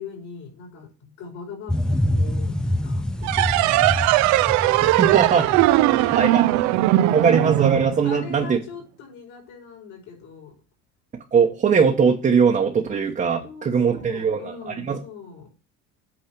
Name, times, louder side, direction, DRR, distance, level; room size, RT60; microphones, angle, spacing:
voice 1, 0.0-3.9 5.5-5.6 6.2-6.3 6.6-6.8 8.0-10.5 13.4-15.5, left 5 dB, 65° left, -1 dB, 5.2 m, -41 dB
sound 1, 1.7-7.3 7.7-7.8, left 1 dB, 5° left, 0.4 m, -27 dB
sound 2, 3.2-8.5, right 16 dB, 60° right, 0.5 m, -19 dB
voice 2, 5.0-5.5 6.2-6.4 7.1-8.6 11.3-15.0, right 6 dB, 25° right, 1 dB, 1.1 m, -20 dB
8.8 x 4.6 x 6.0 m, 0.33 s
cardioid pair, 140°, 32 cm